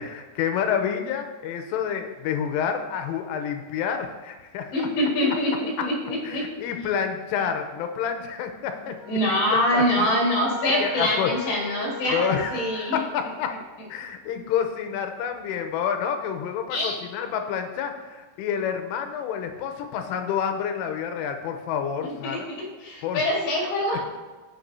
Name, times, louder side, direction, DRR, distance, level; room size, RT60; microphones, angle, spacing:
voice 1, 0.0-4.9 5.2-5.4 5.8-5.9 6.2-10.1 10.8-11.3 12.1-13.6 13.9-22.5 23.0-23.4 23.9-24.0, left 8 dB, 85° left, 6 dB, 3.3 m, -29 dB
voice 2, 4.7-6.5 9.1-13.0 16.7-17.0 22.2-24.0, left 1 dB, 65° left, -3 dB, 3.9 m, -24 dB
sound 1, 9.0-13.4, equal, 45° left, 2.5 m, -38 dB
16.5 x 6.8 x 2.7 m, 1.3 s
omnidirectional pair, 5.7 m